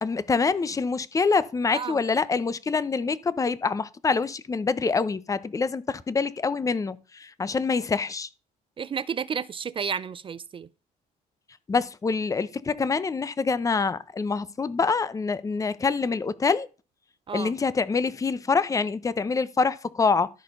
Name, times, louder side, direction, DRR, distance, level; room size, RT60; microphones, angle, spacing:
voice 1, 0.0-8.3 11.7-16.7 17.3-20.3, left 4 dB, 20° left, 0.6 m, -25 dB
voice 2, 8.8-10.7 17.3-17.5, right 7 dB, 30° right, 0.4 m, -31 dB
13.0 x 4.4 x 5.3 m
cardioid pair, 110°, 17 cm